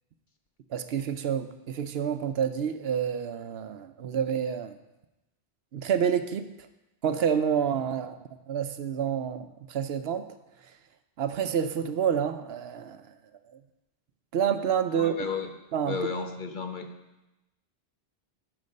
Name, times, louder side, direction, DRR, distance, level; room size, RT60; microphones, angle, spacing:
voice 1, 0.7-4.7 5.7-6.5 7.0-8.2 8.5-10.3 11.2-13.0 14.3-15.1 15.7-16.1, right 8 dB, 70° right, 10 dB, 0.8 m, -28 dB
voice 2, 14.9-15.5 15.9-16.9, left 5 dB, 50° left, 5 dB, 1.0 m, -33 dB
12.5 x 5.2 x 5.4 m, 0.99 s
omnidirectional pair, 1.1 m